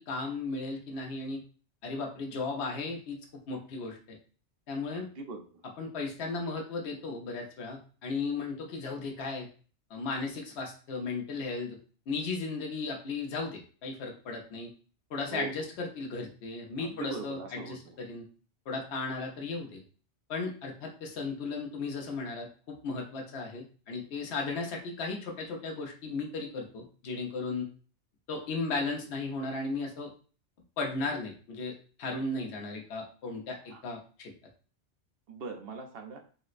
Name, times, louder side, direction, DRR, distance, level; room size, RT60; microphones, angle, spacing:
voice 1, 0.0-1.4 1.8-4.2 4.7-5.1 5.8-9.5 9.9-11.8 12.1-14.7 15.1-18.3 18.7-19.8 20.3-27.7 28.3-30.1 30.8-34.3, left 3 dB, 70° left, 0 dB, 1.0 m, -35 dB
voice 2, 4.9-5.6 15.3-15.7 16.8-17.9 33.7-33.8 35.3-36.2, right 4 dB, 65° right, 4 dB, 0.8 m, -41 dB
4.0 x 2.0 x 2.4 m, 0.39 s
omnidirectional pair, 1.2 m